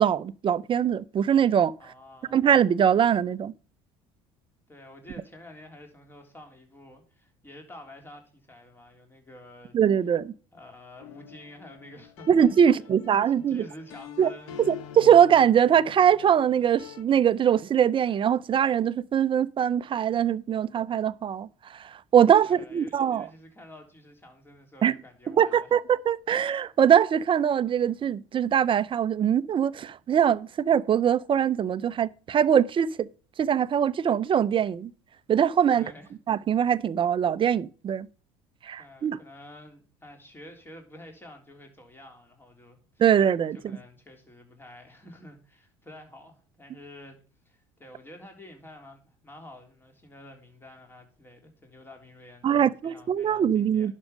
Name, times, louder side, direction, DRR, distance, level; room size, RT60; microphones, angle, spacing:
voice 1, 0.0-1.7 2.3-3.5 9.7-10.3 12.3-13.6 14.2-14.3 14.7-21.5 22.1-23.3 24.8-24.9 25.4-33.1 33.4-34.9 35.3-35.9 36.3-38.1 38.6-39.2 43.0-43.6 52.4-53.9, right 8 dB, 35° right, 0.7 m, -22 dB
voice 2, 1.8-2.4 4.7-9.8 10.5-14.6 22.4-25.7 35.7-36.1 38.8-43.0 43.5-47.2 47.5-53.9, left 1 dB, 15° left, 3.6 m, -49 dB
sound 1, 11.0-17.0, left 8 dB, 90° left, 1.3 m, -46 dB
11.5 x 6.4 x 5.1 m
supercardioid pair, 90°, 14 cm